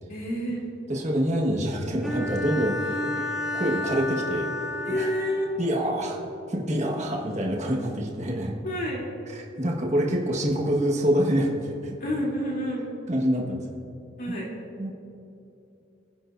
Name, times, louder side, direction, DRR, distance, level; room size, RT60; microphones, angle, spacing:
voice 1, 0.1-0.6 4.8-5.5 8.6-9.1 12.0-12.9 14.2-14.5, equal, 45° left, -3 dB, 3.0 m, -29 dB
voice 2, 0.9-3.2 3.5-4.5 4.9-5.1 5.6-6.2 6.5-8.5 9.3-12.0 13.1-13.6 14.3-14.4 14.8-14.9, equal, 35° right, -1 dB, 1.5 m, -26 dB
Bowed string instrument, 2.0-5.7, left 1 dB, ahead, 2.0 m, -31 dB
24.5 x 10.0 x 2.6 m, 2.8 s
head